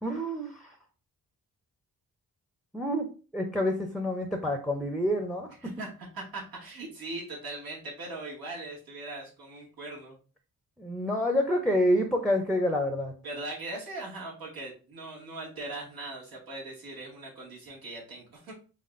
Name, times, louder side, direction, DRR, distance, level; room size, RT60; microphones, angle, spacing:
voice 1, 0.0-0.7 2.7-3.1 3.3-5.5 10.8-13.1, equal, ahead, 4 dB, 0.6 m, -28 dB
voice 2, 6.1-10.2 13.2-18.5, right 2 dB, 90° right, -5 dB, 2.1 m, -40 dB
4.1 x 3.9 x 2.5 m, 0.36 s
cardioid pair, 100°, 35 cm